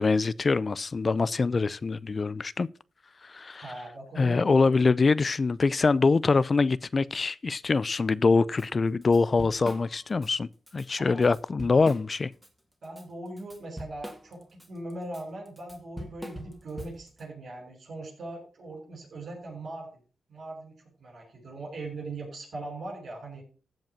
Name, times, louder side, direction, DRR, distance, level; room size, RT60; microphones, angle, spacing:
voice 1, 0.0-2.7 3.2-3.7 4.2-10.5 10.7-12.3, left 4 dB, 45° left, 0.5 m, -24 dB
voice 2, 3.6-4.7 11.0-11.3 12.8-19.9 20.3-23.4, right 2 dB, 70° right, 7.1 m, -40 dB
Drum kit / Drum, 8.6-8.7 9.0-10.3 10.7-10.9 11.2-12.5 12.8-17.2, equal, 10° right, 2.3 m, -42 dB
15.0 x 5.4 x 6.0 m
cardioid pair, 75°, 0 cm